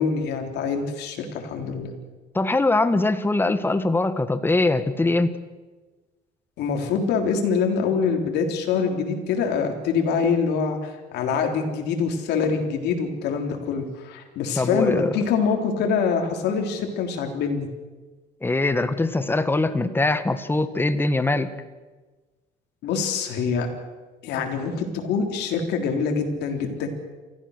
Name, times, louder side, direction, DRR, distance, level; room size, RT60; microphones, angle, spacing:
voice 1, 0.0-1.9 6.6-17.7 22.8-23.7 24.2-26.9, left 5 dB, 80° left, 3 dB, 3.6 m, -25 dB
voice 2, 2.3-5.4 14.6-15.1 18.4-21.5, left 2 dB, 15° left, 11 dB, 1.4 m, -22 dB
28.5 x 14.5 x 6.6 m, 1.3 s
cardioid pair, 110°, 17 cm